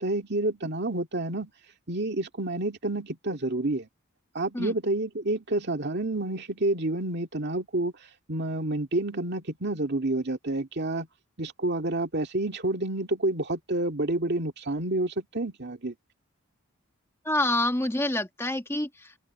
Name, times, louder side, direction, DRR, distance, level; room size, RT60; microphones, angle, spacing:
voice 1, 0.0-1.5 1.9-3.9 4.3-7.9 8.3-11.1 11.4-15.9, right 2 dB, 50° right, 2.3 m, -29 dB
voice 2, 17.2-19.2, left 1 dB, 10° left, 1.6 m, -27 dB
head